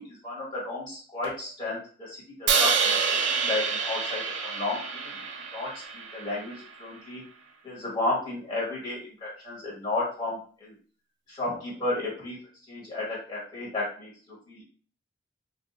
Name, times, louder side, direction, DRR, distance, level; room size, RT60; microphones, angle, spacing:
voice 1, 0.0-5.1 5.5-7.2 7.6-10.7 11.3-12.4 12.7-14.6, left 2 dB, 25° left, -5 dB, 1.4 m, -33 dB
Crash cymbal, 2.5-6.7, right 6 dB, 65° right, 0.4 m, -27 dB
2.6 x 2.3 x 2.4 m, 0.42 s
head